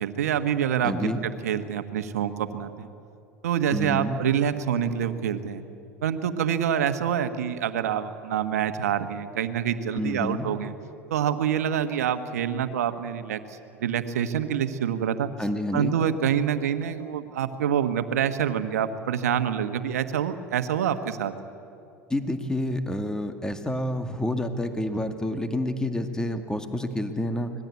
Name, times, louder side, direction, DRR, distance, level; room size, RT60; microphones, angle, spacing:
voice 1, 0.0-2.9 3.4-5.6 6.0-10.7 11.1-15.3 15.7-21.3, right 9 dB, 80° right, 10 dB, 1.4 m, -26 dB
voice 2, 0.8-1.2 3.7-4.2 9.9-10.5 15.4-16.0 22.1-27.5, left 1 dB, 10° left, 7 dB, 2.1 m, -29 dB
25.5 x 19.5 x 8.4 m, 2.7 s
hypercardioid pair, 80°, 8 cm